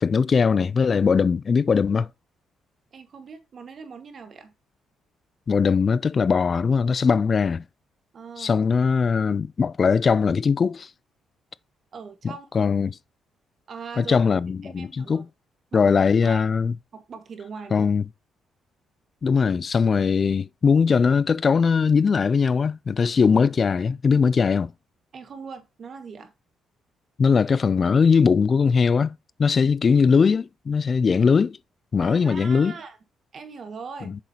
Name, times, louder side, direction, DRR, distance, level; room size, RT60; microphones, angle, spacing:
voice 1, 0.0-2.1 5.5-7.6 8.4-10.9 12.5-13.0 14.0-15.3 15.7-16.7 17.7-18.0 19.2-24.7 27.2-31.6 31.9-32.7 34.1-34.2, left 5 dB, 40° left, 0.4 m, -20 dB
voice 2, 2.9-4.5 8.1-8.6 11.9-12.7 13.7-14.2 14.6-15.2 15.7-15.9 16.2-16.5 16.9-17.9 25.1-26.3 32.0-33.0 33.3-34.2, right 5 dB, 50° right, 1.8 m, -40 dB
8.2 x 6.6 x 2.9 m
cardioid pair, 90°, 0 cm